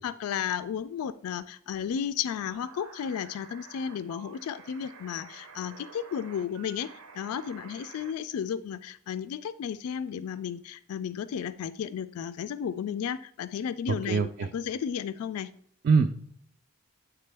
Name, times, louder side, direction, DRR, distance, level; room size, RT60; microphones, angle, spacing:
voice 1, 0.0-15.5, left 8 dB, 80° left, 14 dB, 0.3 m, -33 dB
sound 1, 2.4-8.1, right 5 dB, 85° right, 0.7 m, -50 dB
voice 2, 13.9-14.5 15.8-16.1, right 5 dB, 45° right, 6 dB, 0.3 m, -24 dB
9.2 x 3.6 x 3.3 m, 0.62 s
head